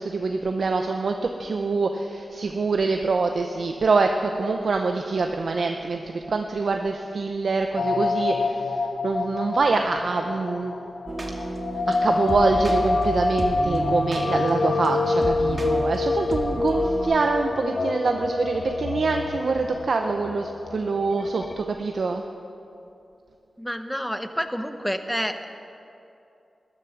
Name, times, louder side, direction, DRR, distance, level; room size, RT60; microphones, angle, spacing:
voice 1, 0.0-10.7 11.9-22.2, right 4 dB, 70° right, 4 dB, 0.6 m, -25 dB
sound 1, 7.8-21.6, left 3 dB, 65° left, 0.6 m, -27 dB
sound 2, 11.1-17.0, right 2 dB, 45° right, 1.8 m, -31 dB
voice 2, 23.6-25.5, equal, 5° left, 8 dB, 1.0 m, -29 dB
13.5 x 11.0 x 6.0 m, 2.7 s
cardioid pair, 40°, 0 cm